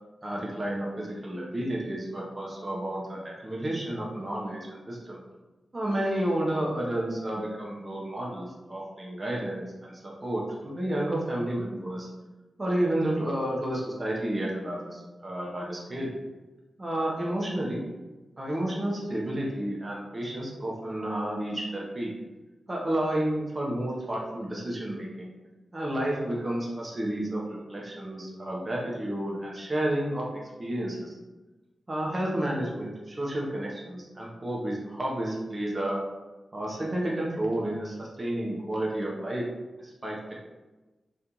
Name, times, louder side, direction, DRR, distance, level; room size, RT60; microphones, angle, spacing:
voice 1, 0.2-5.2 5.7-12.1 12.6-16.2 16.8-17.8 18.4-22.1 22.7-25.3 25.7-30.3 30.6-31.2 31.9-36.0 36.5-39.4 39.8-40.2, right 1 dB, 25° right, -3 dB, 0.6 m, -31 dB
2.8 x 2.4 x 3.7 m, 1.1 s
wide cardioid pair, 140°, 0 cm